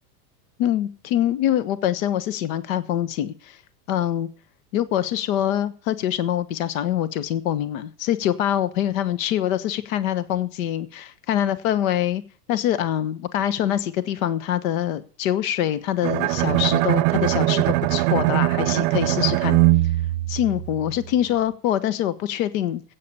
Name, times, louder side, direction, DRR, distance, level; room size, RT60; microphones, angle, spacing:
voice 1, 0.6-3.6 3.9-4.3 4.7-12.2 12.5-19.6 20.3-22.8, left 11 dB, 55° left, 1.3 m, -24 dB
Bowed string instrument, 16.0-21.1, right 18 dB, 50° right, 0.7 m, -21 dB
12.5 x 8.6 x 6.9 m
supercardioid pair, 150°, 47 cm